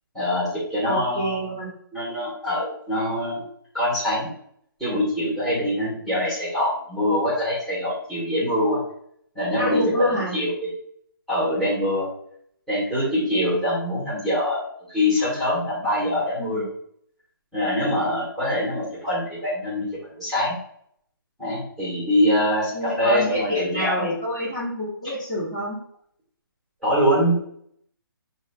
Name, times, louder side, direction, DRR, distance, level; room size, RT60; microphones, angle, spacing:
voice 1, 0.1-1.5 1.9-3.4 3.7-4.3 4.8-8.8 9.4-9.8 10.3-10.7 11.3-12.1 12.7-14.6 14.9-16.7 17.5-19.9 20.1-20.6 21.4-24.1 26.8-27.5, left 1 dB, ahead, -11 dB, 1.6 m, -24 dB
voice 2, 0.8-1.7 9.6-10.4 16.4-16.6 22.7-25.8, equal, 20° left, -9 dB, 1.5 m, -27 dB
5.9 x 2.7 x 2.2 m, 0.67 s
figure-of-eight pair, 145°, 12 cm